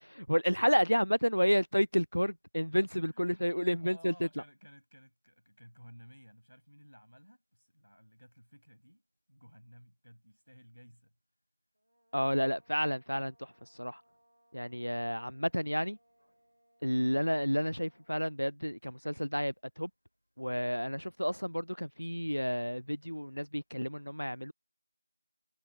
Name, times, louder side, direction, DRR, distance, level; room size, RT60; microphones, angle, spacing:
voice 1, 0.1-4.1 12.1-13.3 13.8-14.0 14.5-16.0 16.8-19.9 20.4-24.5, equal, 35° left, 0.3 m, -30 dB
voice 2, 3.1-9.0 9.3-11.1, equal, 85° left, 7.8 m, -56 dB
sound 1, 11.7-18.4, right 1 dB, 10° right, 1.8 m, -70 dB
figure-of-eight pair, 180°, 0 cm